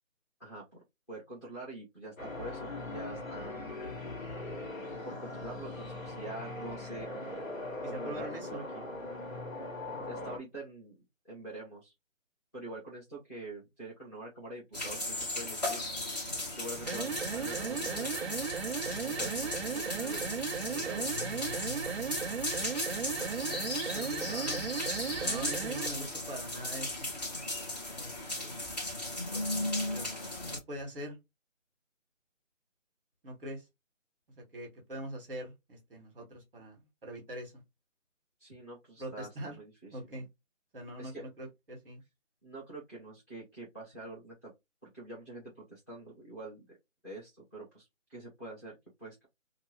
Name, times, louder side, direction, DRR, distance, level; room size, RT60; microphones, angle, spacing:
voice 1, 1.1-3.6 5.0-7.1 7.8-8.8 10.0-11.0 11.3-11.9 12.5-15.8 16.5-18.2 19.0-21.1 38.4-40.0 41.0-41.3 42.4-44.5 44.8-46.8 47.0-49.3, right 2 dB, 15° left, 0.9 m, -45 dB
sound 1, 2.2-10.4, left 2 dB, 90° left, 1.5 m, -40 dB
voice 2, 7.8-8.6 23.2-24.6 25.0-27.1 27.9-28.7 29.3-30.1 30.4-31.2 33.2-33.7 34.4-37.6 39.0-39.6 39.9-40.3 40.7-42.0, equal, 5° right, 1.4 m, -43 dB
sound 2, 14.7-30.6, left 1 dB, 30° left, 1.2 m, -36 dB
sound 3, 16.8-26.0, right 6 dB, 55° right, 0.5 m, -36 dB
2.9 x 2.6 x 3.0 m
figure-of-eight pair, 160°, 39 cm